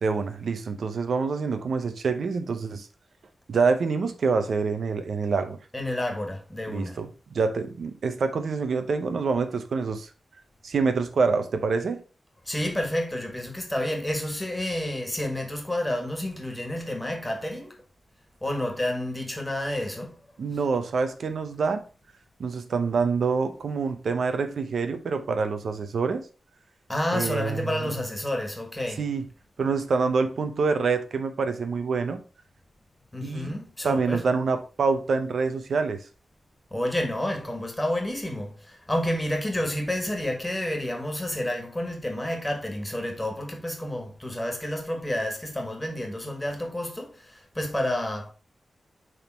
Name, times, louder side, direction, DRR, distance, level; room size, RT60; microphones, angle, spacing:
voice 1, 0.0-2.9 3.5-5.6 6.7-10.1 10.6-12.0 20.4-21.8 22.4-26.3 27.1-27.9 29.0-29.2 29.6-32.2 33.2-33.5 33.8-36.0, right 4 dB, 75° right, 0.7 m, -26 dB
voice 2, 5.7-7.0 12.4-17.8 18.4-20.2 26.9-29.0 33.1-34.2 36.7-48.3, left 1 dB, 10° left, 1.6 m, -30 dB
6.4 x 3.7 x 4.2 m
wide cardioid pair, 90°, 0 cm